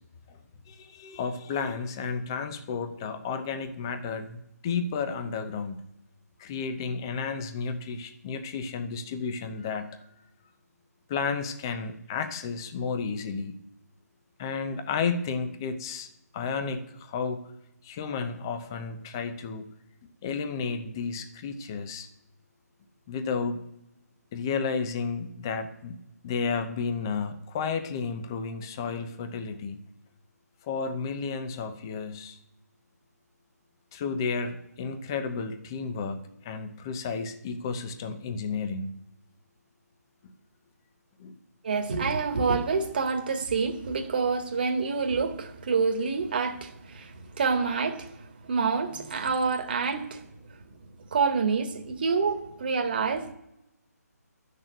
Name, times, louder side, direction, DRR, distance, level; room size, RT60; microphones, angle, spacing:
voice 1, 0.7-5.8 6.4-10.1 11.1-13.6 14.4-16.1 16.3-17.5 17.8-19.7 20.2-22.1 23.1-23.6 24.3-26.0 26.2-29.8 30.6-32.4 33.9-38.9 40.2-40.3 41.2-41.4, left 5 dB, 15° left, 0.7 m, -32 dB
voice 2, 41.6-50.2 51.1-53.4, right 5 dB, 35° right, 1.7 m, -27 dB
12.0 x 6.7 x 8.9 m
hypercardioid pair, 175°, 9 cm